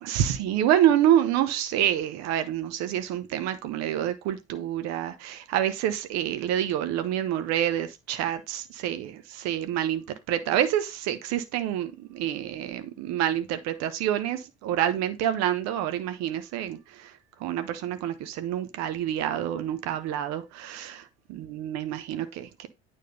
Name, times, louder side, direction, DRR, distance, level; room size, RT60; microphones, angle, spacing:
voice 1, 0.0-17.1 17.4-22.7, right 11 dB, 55° right, 1.1 m, -27 dB
9.2 x 3.7 x 5.4 m
figure-of-eight pair, 60°, 31 cm